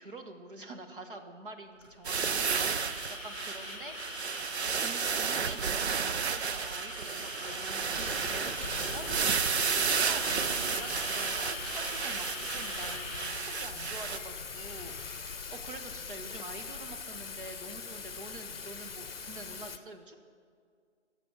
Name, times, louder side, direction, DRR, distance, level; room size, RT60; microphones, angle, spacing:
voice 1, 0.0-2.8 3.1-4.0 4.8-20.2, right 2 dB, 45° right, 5 dB, 1.3 m, -46 dB
sound 1, 1.8-15.2, left 2 dB, 10° left, 2.6 m, -43 dB
sound 2, 2.0-14.2, right 6 dB, 60° right, 0.6 m, -32 dB
Thunder / Rain, 8.0-19.8, left 5 dB, 50° left, 0.7 m, -42 dB
19.5 x 7.1 x 6.1 m, 2.1 s
hypercardioid pair, 170°, 37 cm